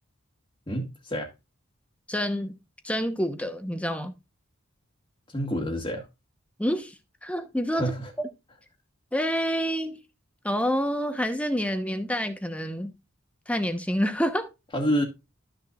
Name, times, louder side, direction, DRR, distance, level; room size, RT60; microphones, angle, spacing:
voice 1, 0.7-1.3 5.3-6.0 7.7-8.1 14.7-15.0, equal, 25° left, 1.7 m, -28 dB
voice 2, 2.1-2.5 2.8-4.1 6.6-7.0 7.2-8.3 9.1-10.0 10.4-12.9 13.5-14.5, equal, 5° left, 0.9 m, -28 dB
12.5 x 6.7 x 2.4 m
head